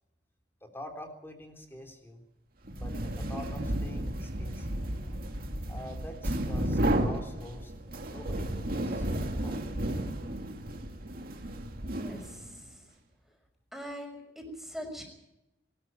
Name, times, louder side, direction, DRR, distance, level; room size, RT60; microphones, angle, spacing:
voice 1, 0.6-2.2 2.7-5.2 5.7-7.7 8.1-9.6, left 1 dB, 15° left, 3 dB, 3.6 m, -46 dB
sound 1, 2.7-12.6, right 1 dB, 55° right, 2.3 m, -33 dB
voice 2, 11.8-12.9 13.7-15.0, equal, ahead, 2 dB, 5.8 m, -43 dB
22.5 x 13.5 x 8.8 m, 0.89 s
head